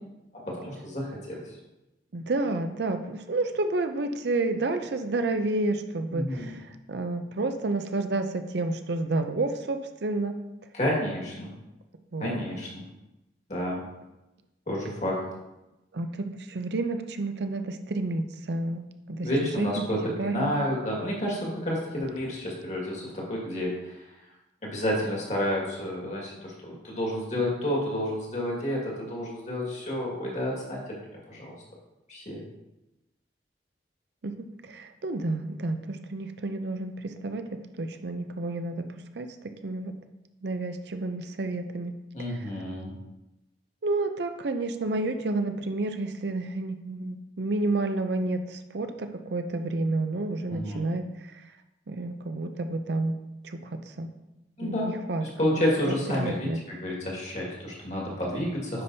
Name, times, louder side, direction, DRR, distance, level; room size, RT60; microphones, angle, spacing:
voice 1, 0.3-1.4 6.1-6.5 10.7-11.5 12.2-12.8 13.5-13.8 14.7-15.2 19.2-24.0 24.6-31.0 31.3-31.5 32.1-32.4 42.1-42.9 50.5-50.9 54.6-54.9 55.2-58.8, left 1 dB, 40° left, -3 dB, 1.8 m, -30 dB
voice 2, 2.1-10.4 12.1-12.4 15.9-19.3 19.6-19.8 20.2-20.6 34.2-39.9 40.4-42.0 42.3-42.4 43.8-51.4 51.9-53.2 53.4-54.1 54.6-55.6 56.1-56.6, right 2 dB, 65° right, 7 dB, 0.5 m, -30 dB
9.8 x 5.2 x 2.7 m, 0.97 s
head